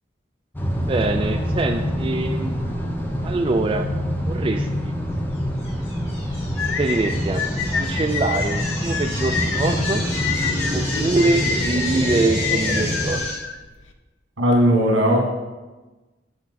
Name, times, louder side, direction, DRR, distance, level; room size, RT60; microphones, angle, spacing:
sound 1, 0.5-13.2, equal, 10° left, 0.7 m, -26 dB
voice 1, 0.8-2.9 3.2-3.9 4.3-4.9 6.6-7.5 7.7-10.0 10.7-13.3, right 3 dB, 30° right, 4 dB, 0.3 m, -24 dB
sound 2, 5.6-13.3, left 1 dB, 35° left, 1.9 m, -31 dB
sound 3, 6.6-13.9, left 6 dB, 90° left, 0.6 m, -28 dB
voice 2, 14.4-15.3, equal, 80° right, 0 dB, 1.7 m, -17 dB
7.4 x 6.1 x 4.1 m, 1.2 s
head